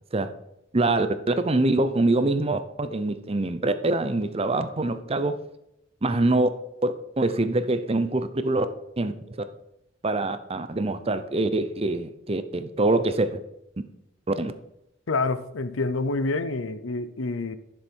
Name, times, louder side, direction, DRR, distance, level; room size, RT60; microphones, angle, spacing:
voice 1, 0.7-5.4 6.0-6.5 6.8-8.7 9.0-9.1 10.0-13.4 14.3-14.5, right 2 dB, 30° right, 0.7 m, -24 dB
voice 2, 15.1-17.6, left 3 dB, 85° left, 0.8 m, -27 dB
10.5 x 7.0 x 4.6 m
head